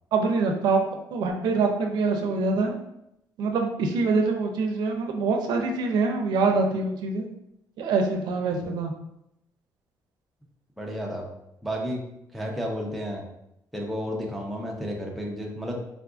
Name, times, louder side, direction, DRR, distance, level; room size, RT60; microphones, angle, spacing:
voice 1, 0.1-0.8 1.1-2.7 3.4-7.2 7.8-8.9, right 4 dB, 70° right, 4 dB, 0.4 m, -24 dB
voice 2, 10.8-11.3 11.6-12.0 12.3-13.2 13.7-15.8, equal, ahead, -2 dB, 0.4 m, -32 dB
3.6 x 2.4 x 2.4 m, 0.81 s
cardioid pair, 165°, 8 cm